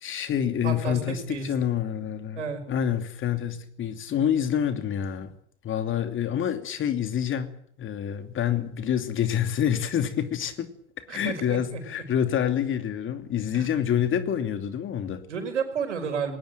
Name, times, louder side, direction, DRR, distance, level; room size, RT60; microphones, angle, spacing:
voice 1, 0.0-2.4 2.7-5.3 5.6-7.5 7.8-10.7 11.1-15.3, left 9 dB, 35° left, 2.8 m, -27 dB
voice 2, 0.6-1.0 1.3-1.5 2.4-2.6 11.1-11.8 13.5-13.7 15.3-16.4, right 6 dB, 75° right, 5.4 m, -31 dB
21.5 x 19.5 x 7.7 m
figure-of-eight pair, 75°, 36 cm